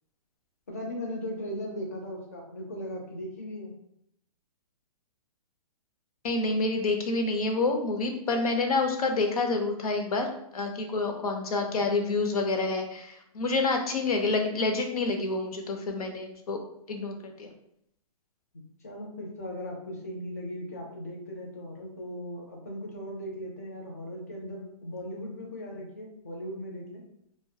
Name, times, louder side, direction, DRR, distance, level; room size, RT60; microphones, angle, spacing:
voice 1, 0.7-3.7 11.7-12.0 18.8-27.0, equal, 25° left, -1 dB, 0.4 m, -38 dB
voice 2, 6.2-10.3 10.5-16.6 16.9-17.5, left 3 dB, 75° left, 4 dB, 0.6 m, -28 dB
2.2 x 2.1 x 2.6 m, 0.75 s
hypercardioid pair, 180°, 19 cm